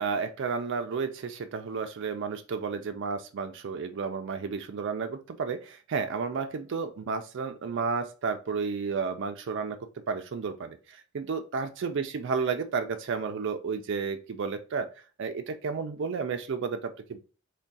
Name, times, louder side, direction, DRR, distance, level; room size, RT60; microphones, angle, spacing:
voice 1, 0.0-14.9 15.2-17.2, right 5 dB, 65° right, 7 dB, 0.4 m, -32 dB
3.5 x 2.2 x 3.9 m, 0.36 s
head